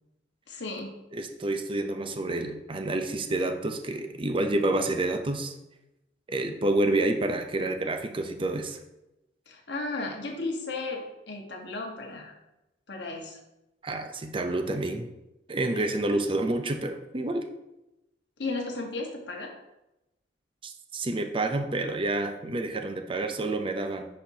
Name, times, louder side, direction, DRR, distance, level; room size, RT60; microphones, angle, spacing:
voice 1, 0.5-0.9 9.5-12.4 12.9-13.4 15.7-16.0 18.4-19.5, left 3 dB, 75° left, 1 dB, 1.3 m, -35 dB
voice 2, 1.1-5.5 6.3-8.8 13.8-15.1 15.5-17.5 20.6-24.1, right 2 dB, 30° right, 5 dB, 0.5 m, -28 dB
10.0 x 4.4 x 2.8 m, 0.93 s
head